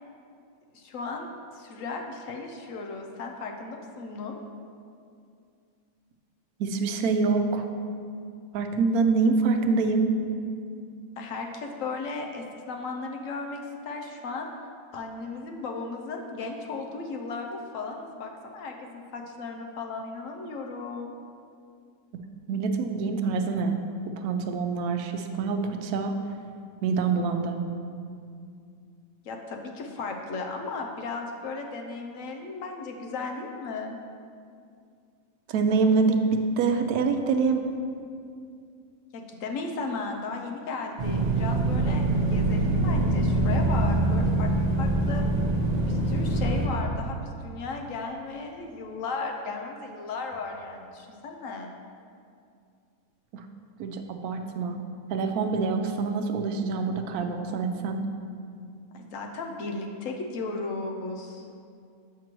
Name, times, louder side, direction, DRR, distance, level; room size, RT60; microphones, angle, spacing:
voice 1, 0.7-4.4 11.2-14.5 14.9-21.1 29.2-34.0 39.1-44.5 44.8-45.2 45.8-51.7 58.9-61.4, left 3 dB, 70° left, 2 dB, 1.0 m, -35 dB
voice 2, 6.6-7.6 8.5-10.1 22.5-23.8 24.2-26.2 26.8-27.6 35.5-37.8 53.3-53.4 53.8-54.8 55.1-58.0, right 4 dB, 90° right, 6 dB, 1.1 m, -25 dB
sound 1, 41.0-46.7, right 2 dB, 45° right, 0.5 m, -24 dB
7.4 x 5.8 x 3.0 m, 2.4 s
omnidirectional pair, 1.5 m